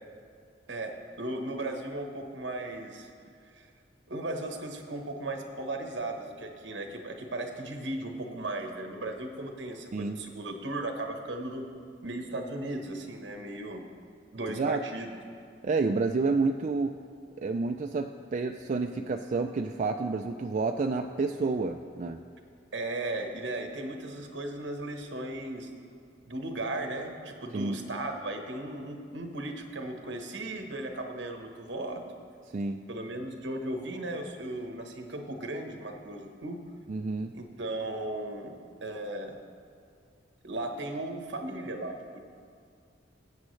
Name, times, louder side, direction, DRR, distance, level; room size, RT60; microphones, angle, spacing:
voice 1, 0.7-3.1 3.5-3.7 4.1-11.7 12.0-13.8 14.3-15.1 22.7-25.7 26.3-32.0 32.9-36.6 37.3-39.4 40.4-42.2, right 2 dB, 70° right, 4 dB, 1.2 m, -36 dB
voice 2, 14.5-14.8 15.6-17.0 17.4-22.2 27.5-27.8 32.5-32.8 36.9-37.3, right 3 dB, 40° right, 4 dB, 0.3 m, -29 dB
20.5 x 8.4 x 3.2 m, 2.3 s
head